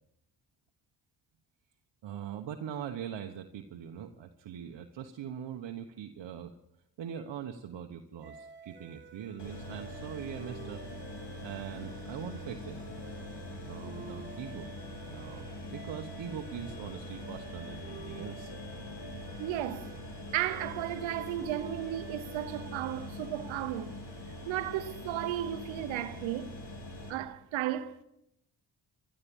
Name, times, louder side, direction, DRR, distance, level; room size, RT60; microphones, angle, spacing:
voice 1, 2.0-6.5 7.0-10.8 11.4-12.8 13.6-14.7 15.1-18.5, right 9 dB, 65° right, 1.3 m, -42 dB
sound 1, 8.2-23.3, right 5 dB, 25° right, 2.0 m, -51 dB
sound 2, 9.4-27.1, left 1 dB, 65° left, 4.7 m, -43 dB
sound 3, 14.1-23.2, left 1 dB, 40° left, 6.4 m, -57 dB
voice 2, 19.4-19.9 20.3-24.0 24.4-26.5 27.1-28.0, right 12 dB, 85° right, 1.1 m, -34 dB
14.0 x 13.0 x 7.2 m
supercardioid pair, 55°, 45 cm